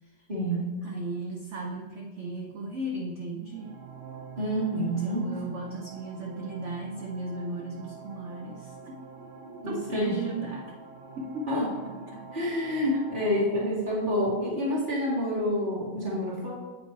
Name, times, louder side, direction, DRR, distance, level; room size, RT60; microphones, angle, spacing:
voice 1, 0.3-0.7 4.4-5.3 9.6-10.2 11.5-11.6 12.1-16.5, equal, 25° right, -6 dB, 2.7 m, -28 dB
voice 2, 0.8-3.8 4.8-9.0 9.7-10.8 11.2-11.6 12.9-13.0, right 2 dB, 60° right, 0 dB, 0.8 m, -36 dB
sound 1, 3.4-13.4, right 4 dB, 85° right, 1.9 m, -46 dB
8.4 x 5.2 x 4.6 m, 1.3 s
omnidirectional pair, 2.1 m